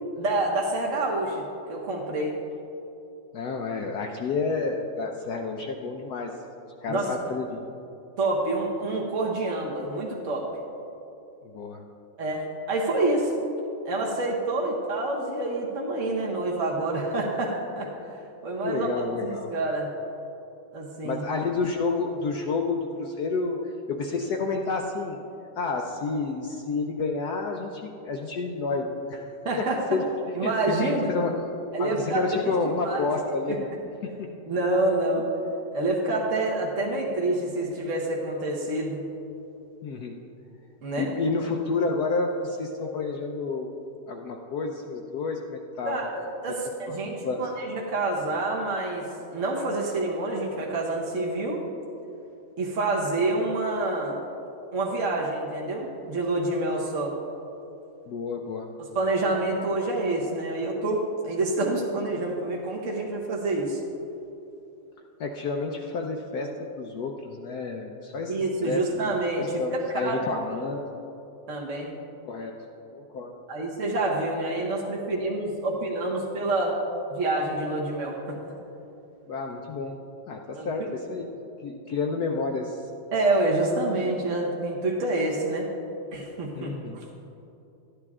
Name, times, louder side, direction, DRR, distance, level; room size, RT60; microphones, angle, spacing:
voice 1, 0.2-2.4 6.9-7.1 8.2-10.5 12.2-13.3 13.8-19.9 20.7-21.2 29.4-29.8 30.3-31.1 31.7-33.0 33.5-33.6 34.5-35.3 35.7-39.0 40.8-41.1 45.9-51.6 52.6-54.2 54.7-57.1 58.9-63.8 68.3-70.1 71.5-71.9 73.5-76.7 77.1-78.4 80.5-80.7 83.1-85.7 86.1-87.0, right 2 dB, 45° right, -2 dB, 1.3 m, -27 dB
voice 2, 3.3-6.3 6.8-7.6 11.4-11.8 18.6-19.5 21.0-23.6 23.9-25.2 25.6-29.3 29.9-30.1 30.4-31.3 31.8-33.7 34.2-34.3 39.8-40.2 41.0-43.7 44.1-46.1 47.2-47.4 58.1-58.7 65.2-66.5 66.8-68.3 68.6-70.9 72.2-72.5 72.9-73.4 79.3-80.0 80.3-81.3 81.6-82.8 86.6-87.0, left 3 dB, 65° left, 1 dB, 1.1 m, -30 dB
12.5 x 9.9 x 3.6 m, 2.9 s
omnidirectional pair, 2.1 m